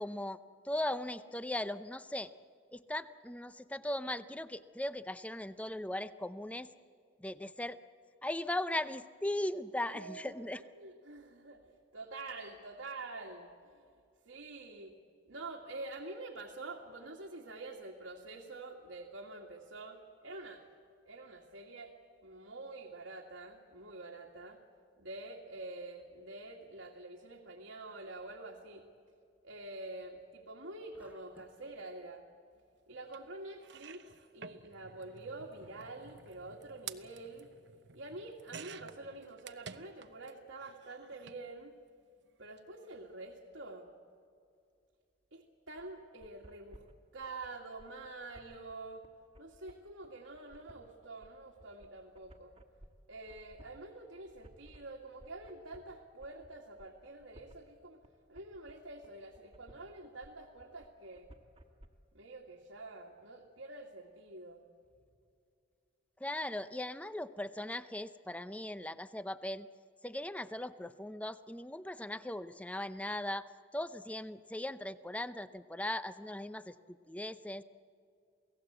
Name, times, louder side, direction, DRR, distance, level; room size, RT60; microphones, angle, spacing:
voice 1, 0.0-2.3 2.7-6.7 7.2-7.8 8.2-10.6 66.2-69.7 70.0-73.5 73.7-77.6, left 1 dB, 5° left, 13 dB, 0.6 m, -38 dB
voice 2, 9.9-13.9 14.3-14.9 15.3-20.6 21.1-22.0 22.2-24.6 25.0-28.8 29.4-32.2 32.9-34.0 34.3-37.5 37.9-41.7 42.4-43.9 45.3-46.9 47.1-49.0 49.4-52.5 53.1-58.0 58.3-61.3 62.1-64.7, right 2 dB, 85° right, -1 dB, 2.1 m, -47 dB
sound 1, 30.9-31.8, right 1 dB, 10° right, 1.2 m, -62 dB
sound 2, 33.1-33.2 33.6-40.3 40.6-41.4 42.4-42.6 42.9-43.0, right 7 dB, 60° right, 0.8 m, -51 dB
sound 3, 45.8-61.9, equal, 25° right, 1.6 m, -59 dB
28.5 x 18.0 x 8.0 m, 2.4 s
head